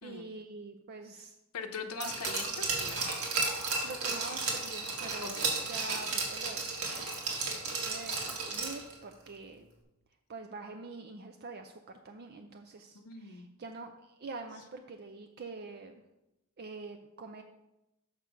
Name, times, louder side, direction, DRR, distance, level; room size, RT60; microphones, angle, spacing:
voice 1, 0.0-1.4 1.9-2.1 3.8-6.7 7.6-9.7 10.3-16.0 16.6-17.4, right 3 dB, 45° right, 5 dB, 0.5 m, -45 dB
voice 2, 1.5-3.0 5.2-5.5 12.9-13.5, left 5 dB, 85° left, 6 dB, 0.7 m, -41 dB
Glass, 2.0-8.9 9.3-9.4, right 3 dB, 75° right, 1.8 m, -34 dB
6.6 x 6.1 x 5.0 m, 0.92 s
head